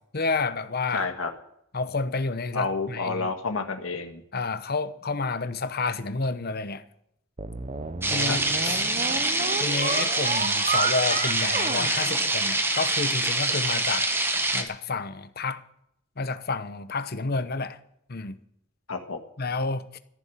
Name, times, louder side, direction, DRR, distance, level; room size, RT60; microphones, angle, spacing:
voice 1, 0.1-1.0 1.7-3.3 4.3-6.8 8.1-8.8 9.6-14.1 14.5-15.6 16.2-17.8 18.1-18.4 19.4-20.0, left 4 dB, 45° left, 0.9 m, -30 dB
voice 2, 0.9-1.3 2.5-4.2 8.2-8.4 18.9-19.2, left 4 dB, 80° left, 1.6 m, -29 dB
sound 1, 7.4-12.9, right 4 dB, 35° right, 0.7 m, -32 dB
sound 2, 8.0-14.6, right 2 dB, 10° right, 1.4 m, -25 dB
14.5 x 7.1 x 9.9 m
head